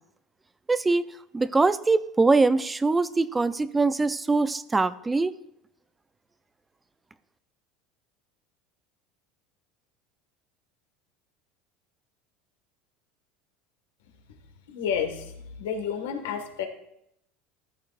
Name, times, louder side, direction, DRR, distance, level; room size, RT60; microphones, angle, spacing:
voice 1, 0.7-1.0 1.3-5.4, right 3 dB, 15° right, 15 dB, 0.5 m, -23 dB
voice 2, 14.7-16.7, left 7 dB, 85° left, 5 dB, 1.6 m, -30 dB
14.0 x 8.4 x 2.5 m, 0.78 s
supercardioid pair, 95°, 0 cm